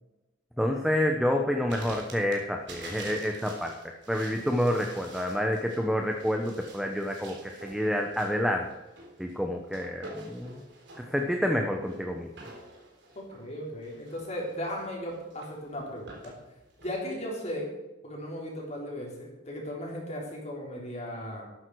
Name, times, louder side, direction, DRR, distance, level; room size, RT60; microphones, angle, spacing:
voice 1, 0.6-3.7 4.1-8.7 9.2-10.5 11.0-12.5, equal, ahead, 2 dB, 1.0 m, -28 dB
sound 1, 1.7-16.9, right 2 dB, 65° right, 3.8 m, -48 dB
voice 2, 13.2-16.3 16.8-17.7 18.0-21.4, equal, 35° left, -3 dB, 3.7 m, -36 dB
13.0 x 12.5 x 4.8 m, 1.0 s
head